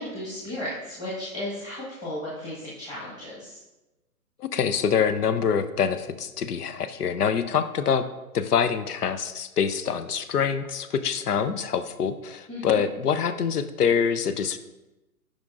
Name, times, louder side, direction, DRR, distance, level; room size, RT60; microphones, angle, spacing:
voice 1, 0.0-3.6 12.5-12.8, left 1 dB, 15° left, -8 dB, 1.4 m, -35 dB
voice 2, 4.4-8.0 8.3-14.6, left 7 dB, 85° left, 12 dB, 0.6 m, -25 dB
9.1 x 5.1 x 2.5 m, 1.0 s
hypercardioid pair, 130°, 45 cm